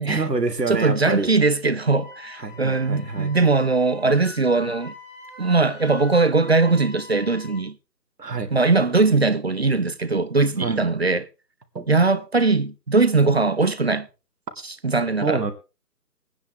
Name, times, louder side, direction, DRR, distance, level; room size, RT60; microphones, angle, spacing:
voice 1, 0.1-1.3 2.4-3.4 8.2-8.5 10.6-10.8 11.7-11.9 15.2-15.5, right 3 dB, 75° right, 2.3 m, -26 dB
voice 2, 0.7-4.9 5.4-7.8 8.5-11.3 11.9-14.1 14.6-15.4, right 3 dB, 40° right, 0.5 m, -20 dB
Wind instrument woodwind instrument, 1.8-7.6, left 2 dB, 10° left, 7.9 m, -43 dB
20.0 x 9.7 x 3.5 m
figure-of-eight pair, 160°, 48 cm